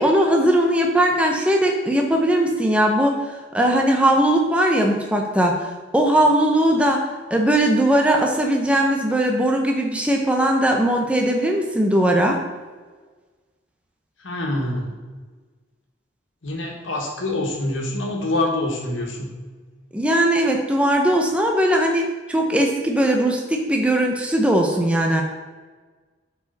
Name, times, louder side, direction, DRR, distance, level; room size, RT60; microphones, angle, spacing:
voice 1, 0.0-7.1 7.3-12.4 19.9-25.2, right 1 dB, 5° right, 1 dB, 0.8 m, -19 dB
voice 2, 14.2-14.9 16.4-19.3, left 1 dB, 85° left, 1 dB, 1.8 m, -25 dB
11.0 x 4.9 x 4.0 m, 1.4 s
head